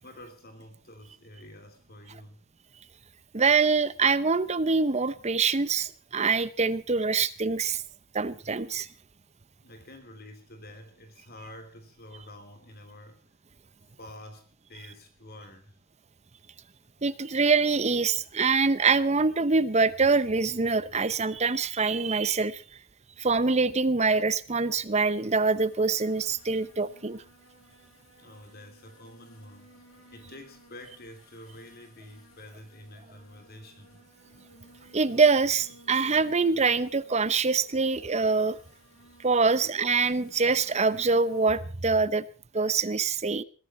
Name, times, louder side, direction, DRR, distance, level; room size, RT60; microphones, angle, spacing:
voice 1, 0.0-2.5 9.6-13.2 14.0-15.8 28.2-34.0, left 1 dB, 50° left, 7 dB, 3.0 m, -48 dB
voice 2, 3.3-7.8 8.1-8.9 17.0-22.6 23.2-27.2 34.9-38.6 39.2-42.3 42.5-43.4, right 4 dB, 35° right, 15 dB, 0.8 m, -24 dB
sound 1, 25.0-41.6, equal, 90° left, 5.9 m, -57 dB
21.0 x 14.0 x 4.3 m, 0.37 s
head